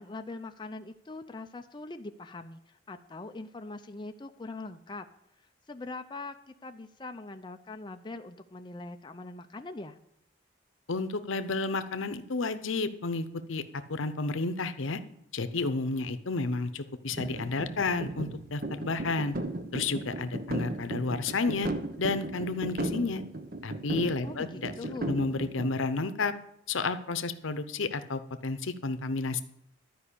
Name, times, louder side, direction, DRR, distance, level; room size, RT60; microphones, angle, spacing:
voice 1, 0.0-5.1 5.7-10.0 24.2-25.2, left 2 dB, 25° left, 6 dB, 0.5 m, -42 dB
voice 2, 10.9-13.6 13.9-15.0 15.3-19.3 19.7-21.7 22.0-23.2 23.6-26.3 26.7-29.4, left 3 dB, 80° left, 11 dB, 0.8 m, -31 dB
sound 1, 17.1-25.7, right 2 dB, 45° right, 1.0 m, -36 dB
12.5 x 5.3 x 8.4 m, 0.76 s
head